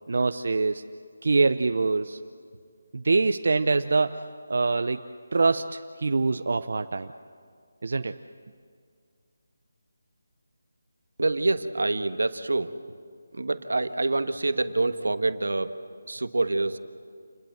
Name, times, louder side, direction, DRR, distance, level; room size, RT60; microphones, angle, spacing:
voice 1, 0.1-0.8 1.2-2.2 2.9-4.2 4.5-5.0 5.3-7.1 7.8-8.2, right 3 dB, 65° right, 8 dB, 0.7 m, -24 dB
voice 2, 11.2-12.8 13.3-15.8 16.0-16.8, right 2 dB, 90° right, 10 dB, 1.4 m, -26 dB
28.5 x 21.0 x 8.0 m, 2.1 s
figure-of-eight pair, 170°, 0 cm